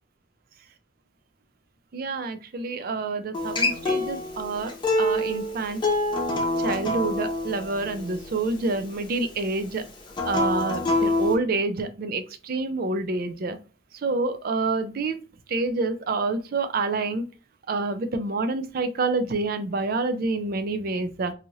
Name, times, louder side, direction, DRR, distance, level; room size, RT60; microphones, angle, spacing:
voice 1, 1.9-5.8 6.6-9.8 10.2-13.6 14.0-15.2 15.5-17.2 17.7-21.3, right 3 dB, 50° right, 9 dB, 0.4 m, -27 dB
Acoustic guitar, 3.3-8.5 10.1-11.4, left 2 dB, 25° left, 0.6 m, -26 dB
2.7 x 2.4 x 3.0 m, 0.33 s
head